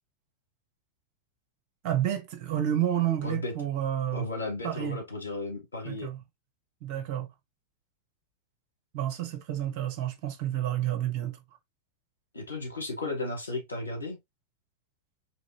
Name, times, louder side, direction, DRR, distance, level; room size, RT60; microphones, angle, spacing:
voice 1, 1.8-4.3 4.6-5.0 5.8-6.2 6.8-7.3 8.9-11.4, right 11 dB, 45° right, 1.0 m, -30 dB
voice 2, 3.2-3.5 4.1-6.1 12.3-14.2, left 2 dB, 75° left, 1.2 m, -34 dB
3.2 x 2.9 x 2.8 m
figure-of-eight pair, 90°, 0 cm